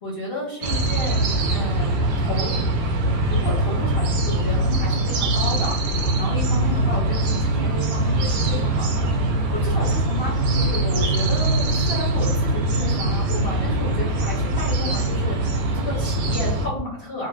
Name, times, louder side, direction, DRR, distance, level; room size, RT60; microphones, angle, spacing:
voice 1, 0.0-2.6 3.3-17.3, left 2 dB, 60° left, -5 dB, 0.6 m, -32 dB
sound 1, 0.6-16.7, right 2 dB, 70° right, 1.1 m, -22 dB
3.2 x 2.3 x 2.4 m, 0.70 s
omnidirectional pair, 2.0 m